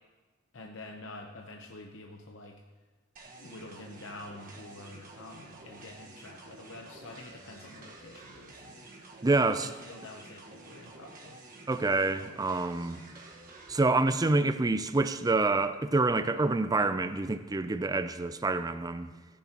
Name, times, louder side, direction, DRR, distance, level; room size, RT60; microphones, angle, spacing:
voice 1, 0.5-2.6 3.4-8.9 9.3-11.4, left 2 dB, 65° left, 0.8 m, -47 dB
sound 1, 3.2-13.8, right 2 dB, 45° right, 1.4 m, -50 dB
voice 2, 9.2-9.7 11.7-13.0 13.7-19.1, right 3 dB, 20° right, 0.4 m, -27 dB
14.5 x 10.0 x 2.9 m
head